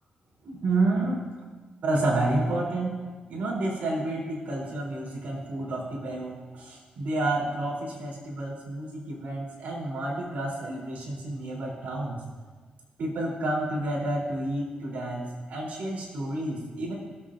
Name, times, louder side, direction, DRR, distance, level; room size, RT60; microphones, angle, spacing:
voice 1, 0.4-1.2 1.8-3.0 3.3-12.2 13.0-16.9, right 2 dB, 75° right, -4 dB, 3.0 m, -30 dB
18.0 x 7.3 x 2.5 m, 1.3 s
cardioid pair, 80°, 3 cm